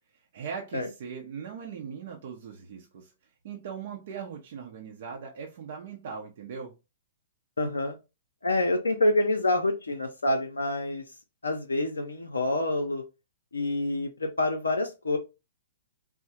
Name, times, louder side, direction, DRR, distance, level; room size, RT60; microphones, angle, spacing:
voice 1, 0.1-3.1 3.4-6.7, right 6 dB, 60° right, 1 dB, 0.6 m, -39 dB
voice 2, 7.6-8.0 8.4-11.0 11.4-13.0 13.5-15.2, left 2 dB, 85° left, 3 dB, 0.5 m, -27 dB
3.7 x 2.0 x 2.8 m, 0.27 s
hypercardioid pair, 120°, 0 cm